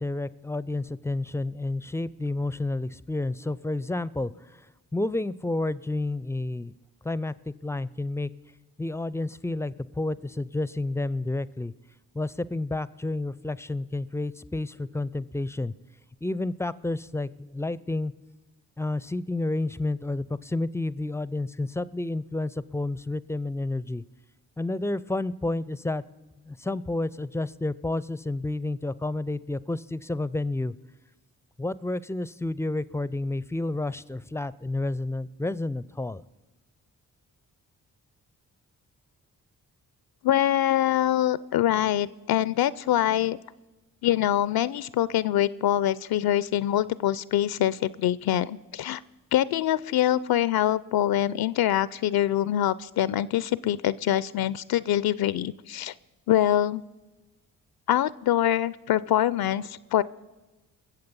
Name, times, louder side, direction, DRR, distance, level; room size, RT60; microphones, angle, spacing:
voice 1, 0.0-4.6 4.9-6.7 7.0-8.3 8.8-11.7 12.1-15.7 16.2-18.1 18.8-24.0 24.6-26.0 26.4-30.7 31.6-36.2, left 2 dB, 5° left, 19 dB, 0.4 m, -30 dB
voice 2, 40.2-43.4 44.0-49.0 49.3-55.9 56.3-56.8 57.9-60.0, left 12 dB, 60° left, 19 dB, 0.5 m, -24 dB
21.0 x 7.7 x 5.4 m, 1.1 s
hypercardioid pair, 40°, 41 cm